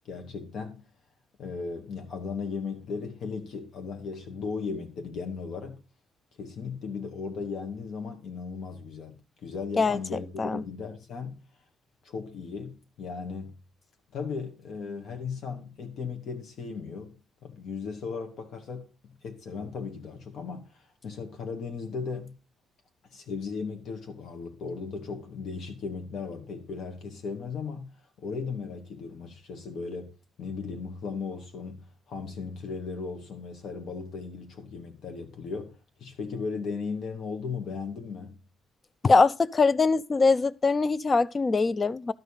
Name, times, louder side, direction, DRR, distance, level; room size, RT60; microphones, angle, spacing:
voice 1, 0.1-0.9 1.4-5.8 6.4-11.4 12.0-13.5 14.1-17.1 17.4-22.4 23.1-27.9 28.2-30.1 30.4-38.4, left 5 dB, 65° left, 2.2 m, -36 dB
voice 2, 9.8-10.6 39.0-42.1, left 4 dB, 35° left, 0.5 m, -23 dB
12.0 x 5.1 x 5.7 m
cardioid pair, 90°, 0 cm